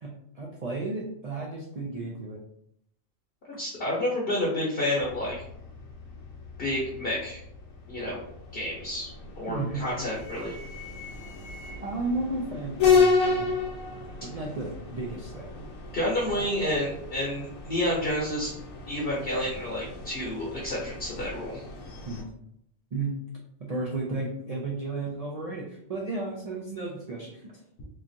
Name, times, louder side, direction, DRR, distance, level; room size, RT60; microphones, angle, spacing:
voice 1, 0.3-2.4 9.5-9.8 11.8-13.5 14.2-15.5 16.4-16.5 22.0-22.2 22.9-23.1 23.6-27.5, right 3 dB, 75° right, -3 dB, 0.3 m, -33 dB
voice 2, 3.5-5.4 6.6-7.4 7.9-8.2 8.5-9.1 9.4-10.5 15.9-18.5 18.9-21.6, left 1 dB, 55° left, -5 dB, 0.8 m, -29 dB
sound 1, 5.0-22.2, left 5 dB, 80° left, 1.1 m, -32 dB
3.2 x 2.3 x 2.5 m, 0.72 s
omnidirectional pair, 1.4 m